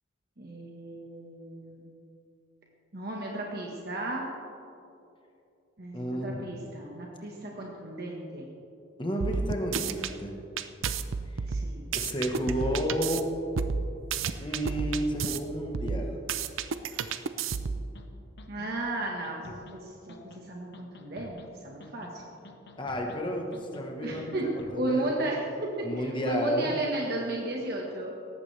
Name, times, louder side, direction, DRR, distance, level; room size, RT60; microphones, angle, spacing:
voice 1, 0.4-1.9 2.9-4.3 5.8-8.5 11.5-11.8 18.5-22.3 24.0-24.5 24.8-28.1, right 1 dB, 50° right, -1 dB, 1.5 m, -34 dB
voice 2, 5.9-6.6 9.0-10.4 11.9-13.3 14.4-16.2 22.8-24.2 24.5-25.1 25.8-26.8, equal, 25° left, 1 dB, 1.3 m, -31 dB
sound 1, 9.2-10.1 10.6-13.2 13.6-15.4 15.7-17.9, right 5 dB, 85° right, 0.6 m, -31 dB
sound 2, 17.9-18.1 18.4-18.7 19.0-19.8 20.1-20.4 20.7-21.5 21.8-22.2 22.4-23.2 23.5-23.8 24.2-24.8, left 2 dB, 60° left, 1.1 m, -49 dB
18.5 x 14.5 x 3.4 m, 2.7 s
head